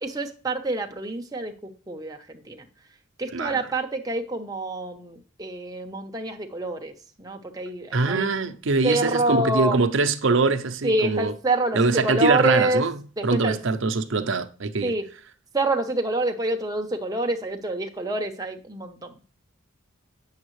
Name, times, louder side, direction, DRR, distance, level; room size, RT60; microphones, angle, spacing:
voice 1, 0.0-1.5 1.9-2.7 3.2-6.9 7.2-8.3 8.8-9.8 10.8-12.8 13.2-13.6 14.8-15.1 15.5-19.2, right 2 dB, 15° right, 0.8 m, -27 dB
voice 2, 7.9-11.3 11.7-14.9, right 3 dB, 60° right, 0.6 m, -23 dB
8.7 x 7.2 x 3.1 m
head